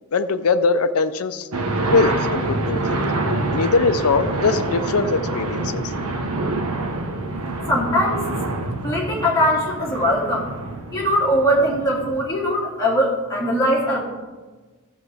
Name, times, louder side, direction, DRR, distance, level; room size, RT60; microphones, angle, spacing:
voice 1, 0.1-1.5 1.9-3.0 3.5-5.9, left 4 dB, 75° left, 9 dB, 0.6 m, -21 dB
sound 1, 1.5-12.2, right 2 dB, 80° right, 1.0 m, -26 dB
voice 2, 7.7-8.2 8.8-10.5 10.9-14.0, equal, 15° left, -5 dB, 2.3 m, -20 dB
13.0 x 7.2 x 3.4 m, 1.3 s
head